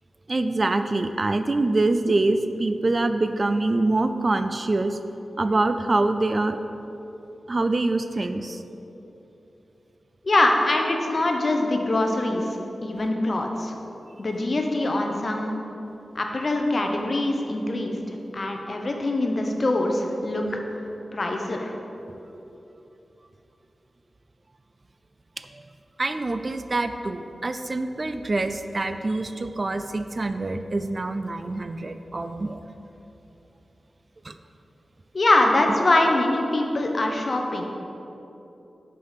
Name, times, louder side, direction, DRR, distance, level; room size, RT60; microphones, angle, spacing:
voice 1, 0.3-5.0 5.4-6.6 7.5-8.6 25.5-25.6 26.0-32.6 34.2-34.3, right 2 dB, 40° right, 9 dB, 0.3 m, -25 dB
voice 2, 10.2-12.6 12.8-13.7 14.2-15.5 16.1-18.0 18.3-20.6 21.1-21.7 35.1-37.6, left 2 dB, 50° left, 2 dB, 0.8 m, -23 dB
5.7 x 5.0 x 5.8 m, 3.0 s
cardioid pair, 60°, 0 cm